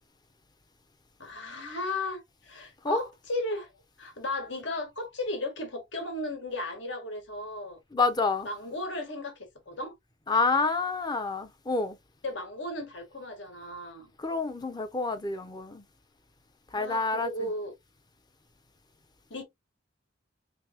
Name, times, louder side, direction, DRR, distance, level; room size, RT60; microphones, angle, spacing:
voice 1, 1.2-3.7 4.0-7.8 8.4-9.9 12.2-14.1 16.7-17.7 19.3-19.4, left 2 dB, 75° left, 1.5 m, -35 dB
voice 2, 7.9-8.5 10.3-12.0 14.2-15.8 16.7-17.3, left 3 dB, 20° left, 0.6 m, -28 dB
3.4 x 3.3 x 2.8 m
head